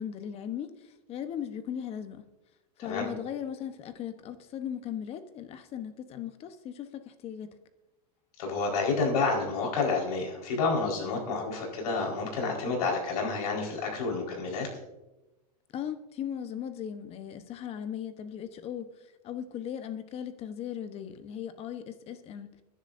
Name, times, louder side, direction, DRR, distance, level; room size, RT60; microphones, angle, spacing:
voice 1, 0.0-2.3 2.8-7.5 15.7-18.9 19.2-22.5, left 9 dB, 30° left, 1.0 m, -38 dB
voice 2, 8.4-14.7, left 4 dB, 70° left, 4.6 m, -29 dB
24.0 x 10.5 x 2.7 m
supercardioid pair, 140°, 20 cm